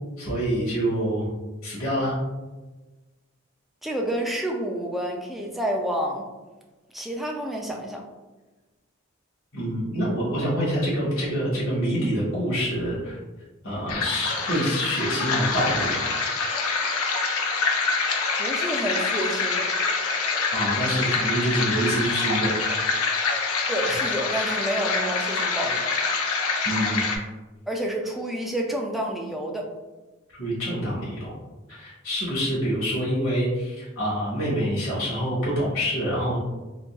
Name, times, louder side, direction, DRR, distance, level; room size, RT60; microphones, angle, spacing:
voice 1, 0.2-1.3 1.6-2.1 9.5-13.2 13.6-16.1 20.5-22.5 23.0-23.5 26.6-27.0 30.4-31.3 31.7-36.4, equal, 70° left, -8 dB, 1.4 m, -26 dB
voice 2, 3.8-6.2 6.9-8.0 18.4-19.7 23.7-25.8 27.7-29.7, right 1 dB, ahead, 0 dB, 0.3 m, -29 dB
sound 1, 13.9-27.2, left 4 dB, 90° left, 0.5 m, -26 dB
3.8 x 2.5 x 2.3 m, 1.2 s
head